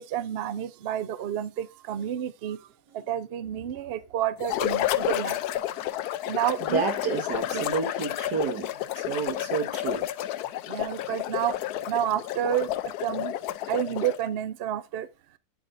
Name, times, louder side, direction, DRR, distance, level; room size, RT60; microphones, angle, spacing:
voice 1, 0.0-2.7 2.9-5.4 6.3-6.8 7.5-7.6 10.7-11.6 11.9-12.7 13.0-13.3 13.7-15.1, right 11 dB, 60° right, 0.6 m, -30 dB
sound 1, 4.4-14.3, left 13 dB, 75° left, 1.1 m, -31 dB
voice 2, 6.6-10.1, right 5 dB, 90° right, 2.0 m, -30 dB
9.4 x 6.8 x 2.5 m
omnidirectional pair, 1.7 m